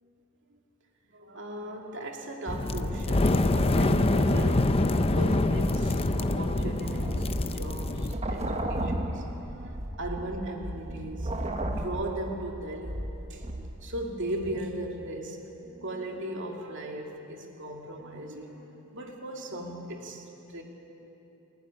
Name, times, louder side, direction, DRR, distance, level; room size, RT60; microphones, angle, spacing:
voice 1, 1.1-13.0 13.3-20.6, right 1 dB, 60° right, 1 dB, 2.6 m, -37 dB
sound 1, 2.5-8.1, left 2 dB, 25° left, 0.7 m, -25 dB
sound 2, 6.5-14.0 14.4-14.6, right 1 dB, 30° right, 1.5 m, -34 dB
28.0 x 11.5 x 9.9 m, 3.0 s
head